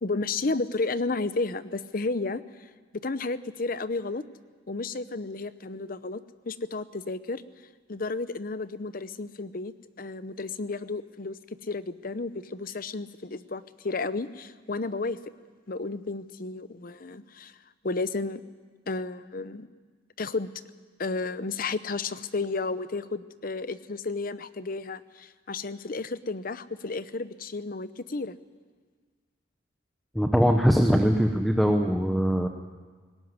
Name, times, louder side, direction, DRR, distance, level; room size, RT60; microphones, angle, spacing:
voice 1, 0.0-2.7 3.0-4.2 4.7-7.4 7.9-15.2 15.7-17.6 17.8-18.4 18.9-19.7 20.2-20.5 21.0-28.4, left 3 dB, 45° left, 14 dB, 0.7 m, -32 dB
voice 2, 30.1-32.5, equal, ahead, 3 dB, 0.9 m, -22 dB
18.5 x 17.5 x 9.7 m, 1.5 s
head